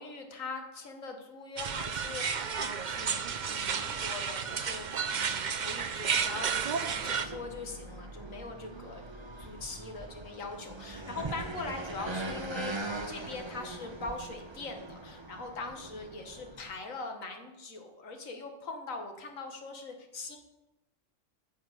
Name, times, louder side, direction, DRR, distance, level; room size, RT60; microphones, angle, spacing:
voice 1, 0.0-9.1 9.4-20.4, left 3 dB, 80° left, 4 dB, 1.9 m, -42 dB
sound 1, 1.6-7.2, right 6 dB, 45° right, 0.6 m, -32 dB
sound 2, 6.1-16.8, right 2 dB, 25° right, 0.9 m, -42 dB
9.3 x 6.8 x 8.1 m, 1.0 s
omnidirectional pair, 1.4 m